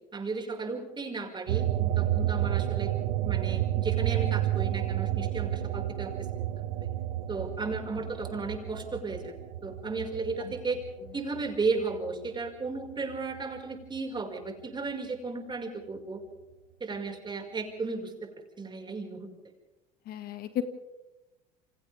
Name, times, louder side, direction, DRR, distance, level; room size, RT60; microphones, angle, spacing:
voice 1, 0.1-2.9 3.2-6.1 6.8-6.9 7.3-9.3 9.6-10.8 11.1-16.2 16.8-18.3 18.6-19.3, right 3 dB, 25° right, 2 dB, 5.9 m, -34 dB
sound 1, 1.5-12.4 12.8-14.2, right 13 dB, 80° right, 1.3 m, -31 dB
voice 2, 20.1-20.6, left 12 dB, 55° left, 9 dB, 1.9 m, -35 dB
29.0 x 27.0 x 3.7 m, 0.97 s
hypercardioid pair, 85°, 18 cm